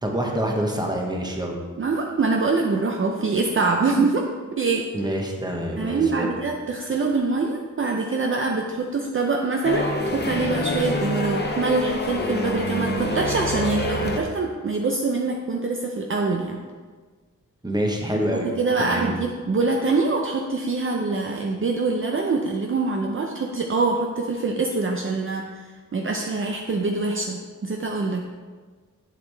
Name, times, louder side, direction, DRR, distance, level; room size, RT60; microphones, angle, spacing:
voice 1, 0.0-1.6 4.9-6.4 17.6-18.5 18.8-19.2, equal, 15° right, 1 dB, 1.0 m, -26 dB
voice 2, 1.8-4.3 4.5-4.9 5.8-16.6 18.3-28.2, right 3 dB, 40° right, 1 dB, 0.5 m, -24 dB
sound 1, 9.6-14.2, left 1 dB, 35° left, 0.8 m, -26 dB
8.1 x 7.6 x 3.3 m, 1.5 s
wide cardioid pair, 160°, 31 cm